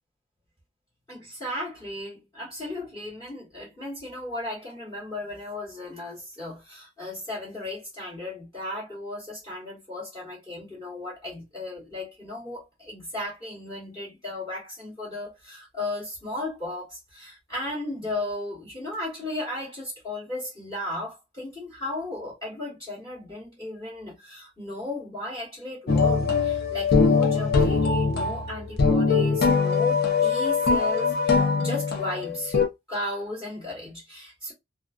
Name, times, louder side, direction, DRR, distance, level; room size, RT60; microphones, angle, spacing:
voice 1, 1.1-32.6 32.9-34.5, left 1 dB, 15° left, 1.1 m, -35 dB
sound 1, 25.9-32.7, left 4 dB, 50° left, 0.5 m, -22 dB
2.4 x 2.3 x 2.4 m
head